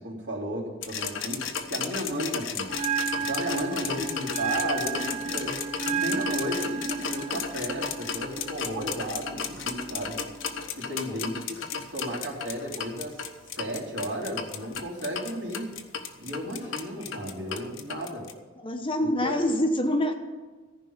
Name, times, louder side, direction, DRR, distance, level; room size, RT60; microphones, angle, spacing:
voice 1, 0.0-2.7 3.2-10.2 10.7-13.3 13.5-15.7 16.2-18.3 19.0-19.4, equal, 60° right, -2 dB, 3.0 m, -34 dB
sound 1, 0.8-18.3, left 6 dB, 70° left, 1.1 m, -34 dB
Bell, 2.7-10.7, right 6 dB, 35° right, 0.6 m, -33 dB
voice 2, 18.6-20.1, left 1 dB, 25° left, 5 dB, 0.9 m, -26 dB
14.5 x 5.4 x 8.6 m, 1.4 s
head